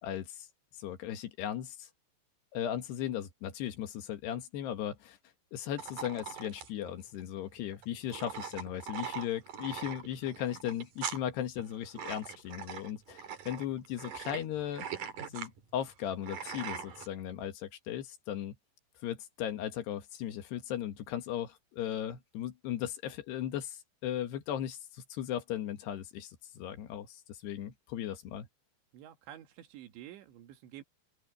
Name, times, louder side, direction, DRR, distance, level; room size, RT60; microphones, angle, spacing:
voice 1, 0.0-0.5 0.8-1.9 2.5-5.2 5.5-14.9 15.3-18.6 19.0-28.5, left 10 dB, 70° left, 3.6 m, -37 dB
sound 1, 5.8-17.1, right 7 dB, 55° right, 3.4 m, -42 dB
voice 2, 28.9-30.8, right 12 dB, 85° right, 4.0 m, -49 dB
open air
omnidirectional pair, 5.1 m